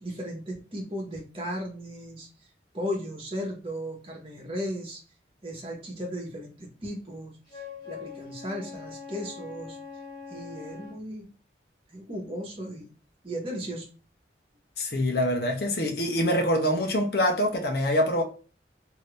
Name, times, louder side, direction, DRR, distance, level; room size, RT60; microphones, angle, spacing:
voice 1, 0.0-2.3 2.7-5.0 5.4-9.8 10.3-11.3 11.9-12.9 13.2-13.9, equal, 30° right, 1.2 m, -36 dB
Wind instrument woodwind instrument, 7.5-11.0, left 5 dB, 25° left, 1.3 m, -42 dB
voice 2, 14.8-18.2, equal, 60° left, 0.9 m, -25 dB
2.8 x 2.7 x 3.2 m
head